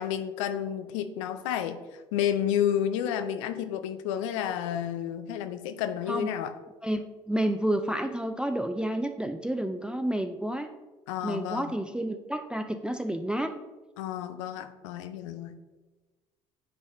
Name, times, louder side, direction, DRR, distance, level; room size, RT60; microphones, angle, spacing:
voice 1, 0.0-1.8 2.1-6.5 11.1-11.8 14.0-15.6, left 10 dB, 85° left, 10 dB, 0.5 m, -30 dB
voice 2, 6.8-10.7 11.2-13.6, right 1 dB, 5° right, 7 dB, 0.4 m, -30 dB
10.0 x 4.0 x 2.6 m, 1.2 s
hypercardioid pair, 60°, 16 cm